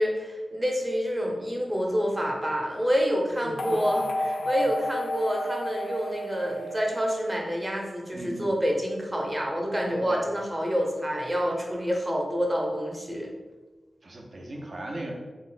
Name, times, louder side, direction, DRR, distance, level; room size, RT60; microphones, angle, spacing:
voice 1, 0.0-13.3, equal, 20° right, -1 dB, 0.7 m, -28 dB
voice 2, 3.4-4.1 4.4-4.7 8.1-8.6 9.9-10.3 14.0-15.1, right 1 dB, 55° right, 0 dB, 0.6 m, -38 dB
sound 1, 3.6-7.8, left 1 dB, 75° left, 0.3 m, -32 dB
3.6 x 2.1 x 3.9 m, 1.3 s
cardioid pair, 60°, 0 cm